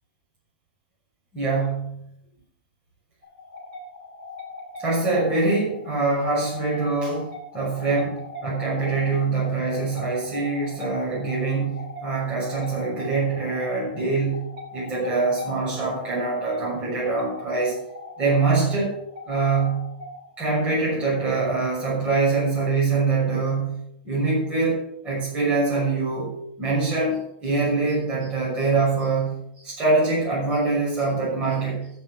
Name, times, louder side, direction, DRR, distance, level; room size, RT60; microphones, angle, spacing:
voice 1, 1.3-2.0 4.8-17.8 18.2-19.0 19.2-19.9 20.4-31.9, right 3 dB, 20° right, -7 dB, 6.2 m, -24 dB
sound 1, 3.2-22.6, left 3 dB, 55° right, 4.9 m, -41 dB
16.5 x 6.1 x 6.0 m, 0.75 s
supercardioid pair, 160°, 5 cm